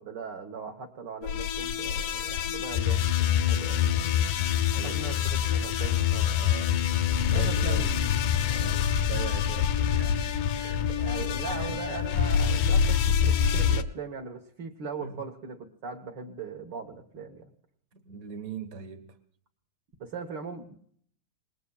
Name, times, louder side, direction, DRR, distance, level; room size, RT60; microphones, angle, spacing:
voice 1, 0.0-4.1 4.7-6.4 7.3-8.2 8.5-8.8 10.6-17.5 20.0-20.7, right 5 dB, 55° right, 1.3 m, -40 dB
sound 1, 1.2-13.8, left 8 dB, 85° left, 2.3 m, -26 dB
voice 2, 4.6-5.3 6.3-6.9 7.2-7.9 8.5-10.8 11.1-11.8 15.0-15.2 17.9-19.2, right 6 dB, 35° right, 1.5 m, -41 dB
27.0 x 20.5 x 2.4 m
omnidirectional pair, 3.5 m